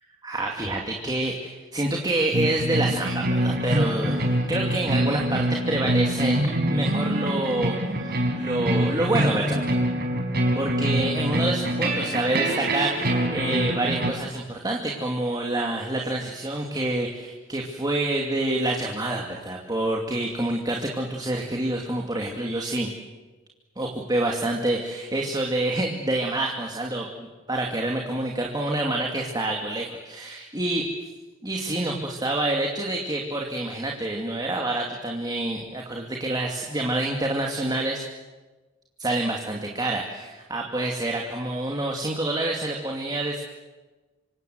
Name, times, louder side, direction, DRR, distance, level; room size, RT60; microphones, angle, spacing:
voice 1, 0.2-9.6 10.6-22.9 23.8-30.9 31.4-38.0 39.0-43.4, right 1 dB, 20° right, 0 dB, 2.6 m, -27 dB
sound 1, 2.3-14.1, right 1 dB, 55° right, 4.6 m, -25 dB
27.0 x 25.5 x 8.0 m, 1.2 s
head